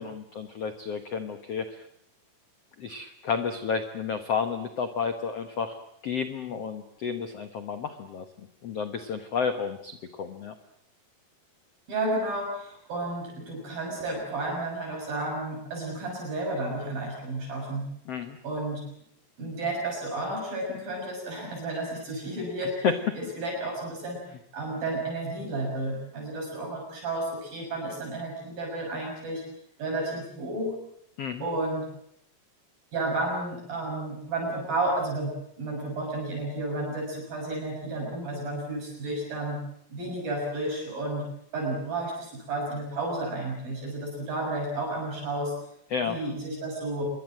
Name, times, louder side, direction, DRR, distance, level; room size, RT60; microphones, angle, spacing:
voice 1, 0.0-1.8 2.8-5.8 6.0-10.5 18.1-18.4 22.8-23.0 31.2-31.4 45.9-46.2, left 6 dB, 90° left, 8 dB, 1.3 m, -31 dB
voice 2, 11.9-17.9 18.4-18.8 19.4-22.9 23.2-24.2 24.5-29.4 29.8-30.7 31.4-31.9 32.9-35.3 35.6-39.6 39.9-41.3 41.5-45.5 46.1-47.1, right 2 dB, 55° right, 0 dB, 8.1 m, -32 dB
27.0 x 22.5 x 7.6 m, 0.73 s
omnidirectional pair, 5.0 m